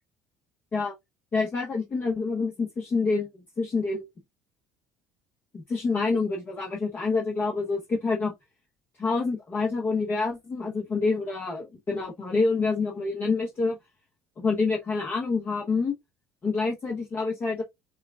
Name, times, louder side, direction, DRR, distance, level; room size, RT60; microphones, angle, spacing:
voice 1, 1.3-3.3 3.6-4.1 5.5-8.3 9.0-13.8 14.4-15.9 16.4-17.6, left 4 dB, 35° left, 0.9 m, -27 dB
5.5 x 2.2 x 2.4 m
supercardioid pair, 95°, 6 cm